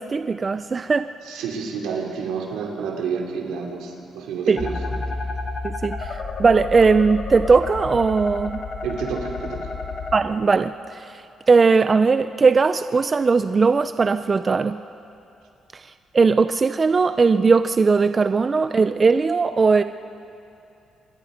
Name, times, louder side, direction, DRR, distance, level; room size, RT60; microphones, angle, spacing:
voice 1, 0.0-1.1 4.5-4.6 5.6-8.6 10.1-11.0 11.5-14.8 16.1-19.8, right 4 dB, 35° right, 11 dB, 0.5 m, -19 dB
voice 2, 1.2-5.1 8.8-9.7, right 6 dB, 85° right, 1 dB, 2.9 m, -29 dB
sound 1, 4.6-10.2, left 3 dB, 50° left, 2.6 m, -30 dB
26.5 x 21.5 x 5.1 m, 2.7 s
cardioid pair, 90°, 0 cm